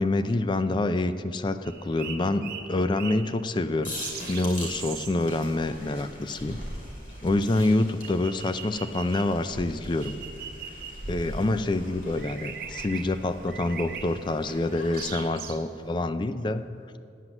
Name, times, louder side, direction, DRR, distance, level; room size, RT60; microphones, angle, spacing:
voice 1, 0.0-4.0 4.3-6.6 7.2-10.1 11.1-16.6, left 2 dB, 25° left, 11 dB, 0.3 m, -27 dB
sound 1, 1.7-16.1, right 7 dB, 50° right, 0.9 m, -43 dB
sound 2, 3.8-15.3, equal, 45° left, 2.3 m, -41 dB
9.2 x 7.8 x 7.2 m, 2.3 s
head